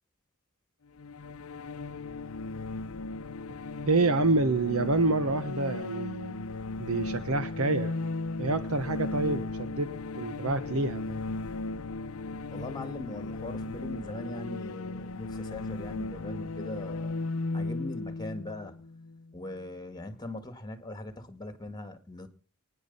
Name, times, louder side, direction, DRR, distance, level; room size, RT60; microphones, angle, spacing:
sound 1, 1.0-19.6, left 3 dB, 65° left, 0.7 m, -36 dB
voice 1, 3.9-6.5 6.8-7.9 8.4-9.9 10.2-11.2, right 2 dB, 75° right, 12 dB, 1.2 m, -27 dB
voice 2, 12.5-17.2 17.5-18.8 19.3-22.3, left 1 dB, 20° left, 10 dB, 2.1 m, -40 dB
24.0 x 10.0 x 5.6 m, 0.39 s
head